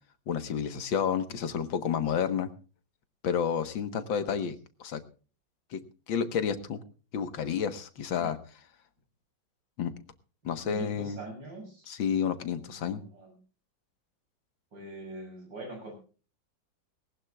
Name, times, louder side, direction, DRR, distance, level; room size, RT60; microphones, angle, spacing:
voice 1, 0.3-2.5 3.2-5.0 5.7-5.8 6.1-6.8 7.1-8.4 9.8-9.9 10.4-11.2 11.9-13.0, left 7 dB, 90° left, 11 dB, 2.1 m, -30 dB
voice 2, 10.4-12.0 12.4-13.4 14.7-15.9, right 2 dB, 70° right, 2 dB, 7.5 m, -44 dB
20.0 x 19.0 x 2.4 m, 0.36 s
omnidirectional pair, 2.0 m